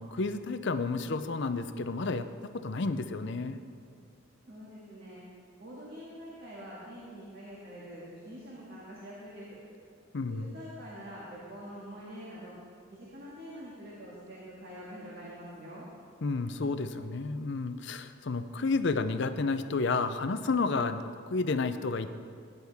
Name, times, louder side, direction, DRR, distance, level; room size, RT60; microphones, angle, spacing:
voice 1, 0.0-2.3 2.5-3.6 10.1-10.5 16.2-22.1, left 3 dB, 60° left, 10 dB, 0.6 m, -31 dB
voice 2, 4.5-5.2 5.6-9.5 10.3-12.5 12.9-15.8, equal, 50° right, -7 dB, 2.1 m, -45 dB
17.0 x 9.8 x 3.6 m, 2.2 s
head